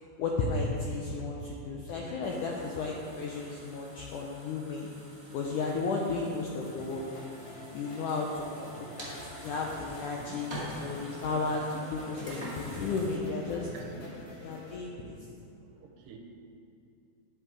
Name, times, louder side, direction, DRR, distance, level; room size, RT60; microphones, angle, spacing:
voice 1, 0.2-4.9 5.3-7.0 7.7-8.7 9.0-13.7 14.4-15.2, left 3 dB, 80° left, -2 dB, 1.8 m, -33 dB
sound 1, 2.2-13.2, right 1 dB, 15° right, 0.9 m, -46 dB
sound 2, 6.6-14.8, left 1 dB, 60° left, 1.2 m, -48 dB
voice 2, 13.7-14.4 15.7-16.2, right 5 dB, 75° right, 1 dB, 2.3 m, -48 dB
10.5 x 8.0 x 4.7 m, 2.6 s
omnidirectional pair, 4.6 m